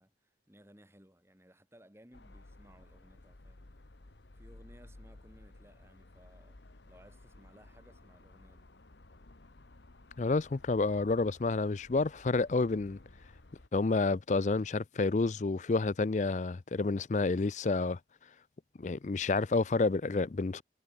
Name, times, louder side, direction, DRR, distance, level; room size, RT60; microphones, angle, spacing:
voice 1, 0.0-3.7 4.3-6.6 6.9-8.7, equal, 15° right, 3.9 m, -60 dB
sound 1, 2.1-13.7, left 2 dB, 80° left, 1.3 m, -56 dB
voice 2, 10.2-13.0 13.7-18.0 18.8-20.6, left 3 dB, 40° left, 0.4 m, -29 dB
head